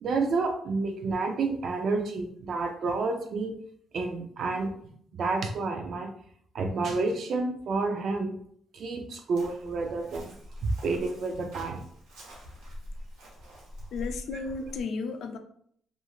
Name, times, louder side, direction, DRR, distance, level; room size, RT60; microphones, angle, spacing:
voice 1, 0.0-3.5 3.9-4.7 5.2-6.1 6.5-8.4 8.7-10.3 10.6-11.8, right 3 dB, 60° right, 4 dB, 0.4 m, -29 dB
Chirp tweet, 9.3-14.8, equal, 85° right, 1.1 m, -44 dB
voice 2, 13.9-15.4, left 4 dB, 70° left, 7 dB, 0.4 m, -33 dB
2.9 x 2.4 x 2.3 m, 0.64 s
cardioid pair, 90°, 0 cm